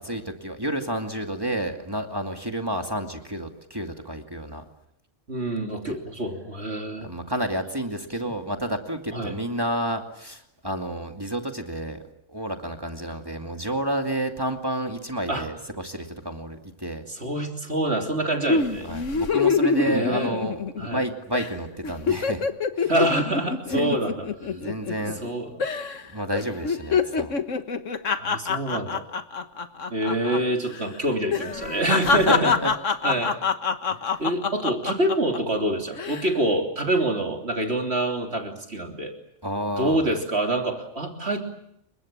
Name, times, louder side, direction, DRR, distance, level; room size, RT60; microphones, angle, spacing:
voice 1, 0.0-4.6 5.8-6.0 7.0-12.0 12.3-17.0 18.8-22.4 22.7-22.9 23.7-24.0 24.4-25.2 26.1-27.3 32.0-32.7 33.9-34.2 39.4-40.1, right 1 dB, 20° right, 4 dB, 2.4 m, -30 dB
voice 2, 5.3-7.1 9.1-9.3 15.3-15.5 17.1-18.9 19.9-20.4 20.8-21.0 22.9-24.1 24.4-24.5 25.2-25.5 28.1-29.0 29.9-32.5 33.0-33.3 34.2-39.1 39.8-41.4, right 1 dB, 60° right, 3 dB, 3.5 m, -26 dB
sound 1, 18.5-21.0 21.3-21.5 21.8-25.3 25.6-26.0 26.3-30.4 30.6-30.8 31.3-35.4 35.9-36.3, left 5 dB, 85° left, 1.8 m, -25 dB
29.5 x 24.5 x 7.6 m, 0.74 s
omnidirectional pair, 1.3 m